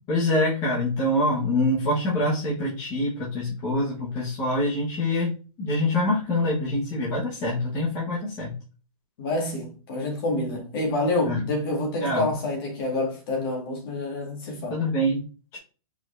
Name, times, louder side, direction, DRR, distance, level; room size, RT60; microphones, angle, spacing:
voice 1, 0.1-8.5 11.2-11.4 12.0-12.3 14.7-15.2 15.5-15.6, left 1 dB, 20° left, 1.3 m, -25 dB
voice 2, 9.2-14.8, left 2 dB, 40° left, 1.9 m, -28 dB
4.8 x 4.2 x 2.6 m
hypercardioid pair, 165°, 19 cm